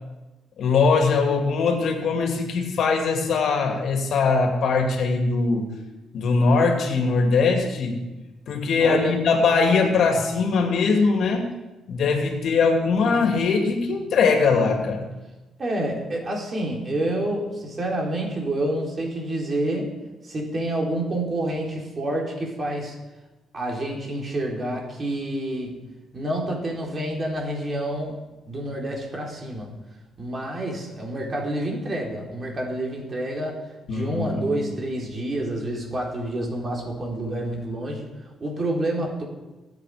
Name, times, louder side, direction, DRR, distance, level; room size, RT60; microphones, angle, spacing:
voice 1, 0.6-5.7 6.1-8.0 8.5-11.5 11.9-15.0 33.9-34.7, left 4 dB, 65° left, 4 dB, 2.5 m, -21 dB
voice 2, 8.8-9.2 15.6-19.9 20.2-23.0 23.5-25.8 26.1-28.2 28.5-29.7 30.2-33.6 33.9-38.1 38.4-39.2, right 1 dB, 35° right, -1 dB, 4.2 m, -28 dB
22.0 x 8.4 x 5.1 m, 1.1 s
cardioid pair, 90°, 0 cm